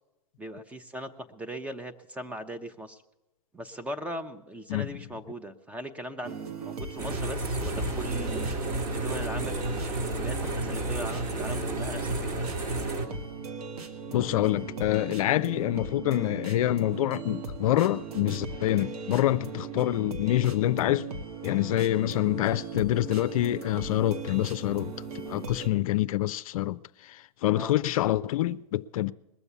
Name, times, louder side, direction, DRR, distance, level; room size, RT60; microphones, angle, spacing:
voice 1, 0.4-3.0 3.5-8.5 8.9-12.4 25.6-25.8 27.6-27.7, right 1 dB, 5° right, 0.8 m, -39 dB
sound 1, 6.2-25.7, right 4 dB, 75° right, 1.6 m, -39 dB
sound 2, 7.0-13.1, right 2 dB, 40° right, 1.9 m, -31 dB
voice 2, 14.1-21.1 21.4-29.1, left 14 dB, 65° left, 0.5 m, -26 dB
21.0 x 7.0 x 6.9 m
hypercardioid pair, 125°, 19 cm